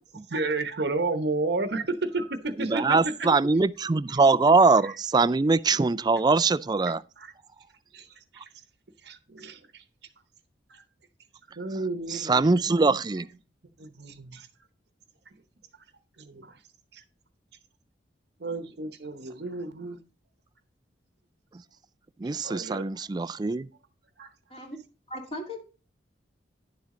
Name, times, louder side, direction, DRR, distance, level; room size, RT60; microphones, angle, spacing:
voice 1, 0.3-3.0 4.8-4.9 6.9-7.3 7.9-8.1 8.3-8.5 9.0-9.8 10.7-10.8 11.6-13.3 13.8-14.5 16.2-16.6 16.9-17.0 18.4-20.0 22.4-22.8 24.2-24.3, right 3 dB, 60° right, 1.0 m, -32 dB
voice 2, 2.6-7.0 12.1-13.3 22.2-23.7, right 3 dB, 20° right, 0.3 m, -22 dB
voice 3, 25.1-25.6, left 1 dB, 35° left, 2.6 m, -37 dB
10.5 x 7.3 x 3.8 m
head